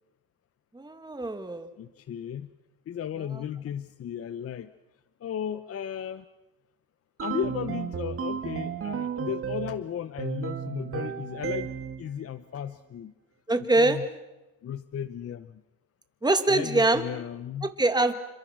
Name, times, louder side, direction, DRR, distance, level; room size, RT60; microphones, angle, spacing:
voice 1, 0.7-1.7 3.3-3.4 13.5-14.0 16.2-17.0 17.6-18.1, right 2 dB, 10° right, 8 dB, 2.3 m, -24 dB
voice 2, 1.8-2.5 2.9-4.7 5.2-6.2 7.2-11.7 12.0-13.1 13.6-14.1 14.6-15.6 16.5-17.7, left 9 dB, 35° left, 13 dB, 0.9 m, -35 dB
sound 1, 7.2-9.8 10.2-12.0, right 7 dB, 30° right, 1.8 m, -33 dB
29.5 x 26.0 x 6.1 m, 1.0 s
cardioid pair, 115°, 41 cm